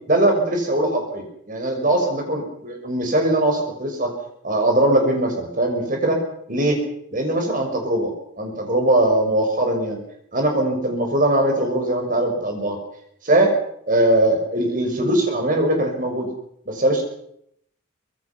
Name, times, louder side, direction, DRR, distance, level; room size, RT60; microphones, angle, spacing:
voice 1, 0.1-4.1 4.4-6.2 6.5-6.8 7.1-8.1 8.4-10.0 10.3-12.8 13.2-13.5 13.9-16.3 16.7-17.0, right 1 dB, 40° right, 3 dB, 6.0 m, -20 dB
24.5 x 22.0 x 6.0 m, 0.72 s
head